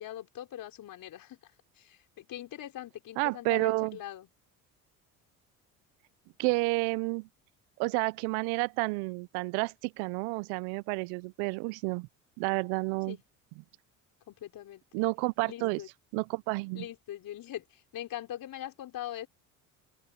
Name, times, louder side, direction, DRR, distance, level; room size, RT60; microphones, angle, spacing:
voice 1, 0.0-4.3 13.1-13.2 14.3-14.8 15.4-15.9 16.7-19.3, left 12 dB, 60° left, 4.6 m, -42 dB
voice 2, 3.2-4.0 6.4-7.3 7.8-12.1 12.4-13.2 14.9-15.8 16.1-16.8, right 27 dB, 75° right, 0.9 m, -30 dB
open air
hypercardioid pair, 70°, 39 cm